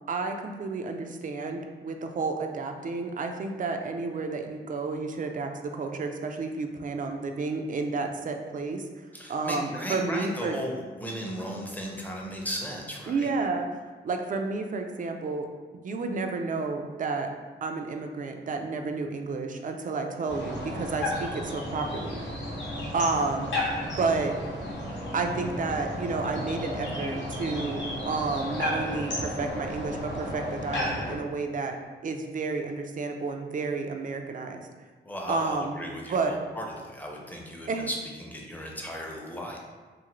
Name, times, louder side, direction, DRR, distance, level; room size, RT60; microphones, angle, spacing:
voice 1, 0.1-8.8 9.3-10.6 13.1-15.5 15.8-17.3 17.6-22.2 22.9-23.6 23.8-24.4 25.1-31.8 32.0-34.6 35.3-35.8 36.1-36.3 37.7-37.9, right 4 dB, 45° right, 4 dB, 0.4 m, -31 dB
voice 2, 9.1-13.3 35.0-39.6, equal, 10° left, -1 dB, 0.6 m, -36 dB
sound 1, 20.3-31.2, left 1 dB, 75° left, 0.8 m, -33 dB
2.6 x 2.5 x 3.0 m, 1.4 s
cardioid pair, 60°, 19 cm